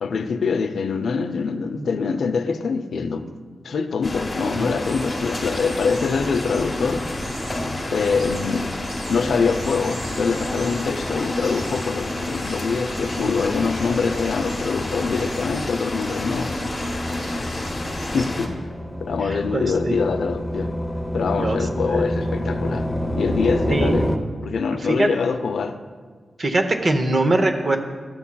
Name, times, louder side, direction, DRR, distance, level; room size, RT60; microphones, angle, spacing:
voice 1, 0.0-3.3 3.6-7.1 7.9-8.7 9.1-16.8 17.3-17.5 18.1-18.6 19.0-20.8 21.1-22.9 23.2-24.0 24.4-25.8, left 5 dB, 85° left, 8 dB, 0.4 m, -24 dB
sound 1, 4.0-18.5, left 1 dB, 25° left, 1.0 m, -29 dB
sound 2, 4.8-18.3, right 1 dB, 90° right, 1.5 m, -41 dB
sound 3, 15.4-24.2, equal, 10° left, 0.6 m, -28 dB
voice 2, 19.5-20.0 21.4-21.6 21.9-22.0 23.7-23.9 24.8-25.1 26.4-27.8, right 2 dB, 40° right, 5 dB, 0.6 m, -21 dB
12.5 x 7.1 x 2.2 m, 1.5 s
wide cardioid pair, 130°, 0 cm